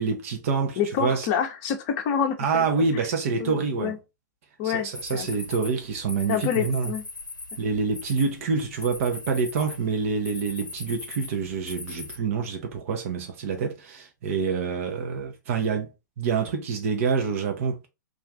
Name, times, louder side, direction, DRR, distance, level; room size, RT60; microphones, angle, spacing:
voice 1, 0.0-1.3 2.4-4.0 4.6-6.9 7.6-15.9 16.2-17.9, right 5 dB, 45° right, 0.5 m, -27 dB
voice 2, 0.8-2.7 3.4-4.0 4.6-5.3 6.3-7.0, left 8 dB, 35° left, 0.6 m, -27 dB
sound 1, 4.9-12.2, left 3 dB, 85° left, 0.6 m, -40 dB
2.4 x 2.4 x 3.2 m
figure-of-eight pair, 110°, 10 cm